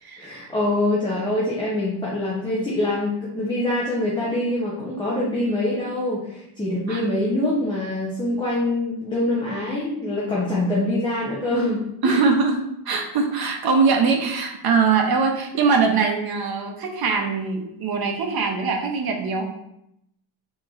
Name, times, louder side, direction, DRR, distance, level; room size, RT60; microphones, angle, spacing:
voice 1, 0.2-12.2, left 1 dB, 10° left, -7 dB, 0.8 m, -24 dB
voice 2, 12.0-12.6 12.8-19.4, right 4 dB, 50° right, 3 dB, 0.8 m, -22 dB
3.7 x 3.1 x 3.8 m, 0.78 s
cardioid pair, 140°, 48 cm